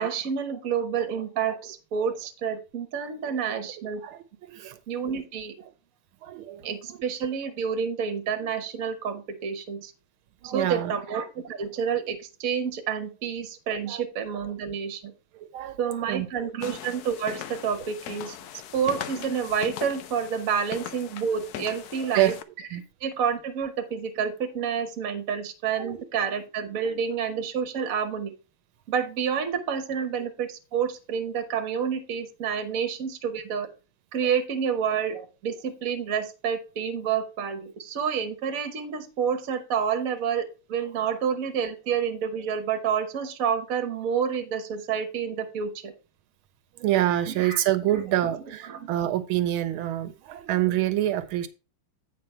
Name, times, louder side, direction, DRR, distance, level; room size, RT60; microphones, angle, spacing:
voice 1, 0.0-4.0 4.9-5.5 6.6-9.9 10.4-15.1 15.8-18.4 18.7-22.3 23.0-28.3 28.9-33.7 34.1-45.9 47.3-47.6 47.9-48.0 48.6-48.9, right 7 dB, 50° right, 7 dB, 1.3 m, -29 dB
voice 2, 4.0-4.8 6.2-6.6 10.4-10.9 13.9-14.0 15.3-16.5 22.1-22.3 22.7-22.8 25.7-26.0 46.8-51.5, right 13 dB, 80° right, 12 dB, 1.5 m, -27 dB
sound 1, 16.6-22.4, left 11 dB, 75° left, 0.9 m, -40 dB
8.6 x 5.3 x 4.3 m, 0.33 s
omnidirectional pair, 2.3 m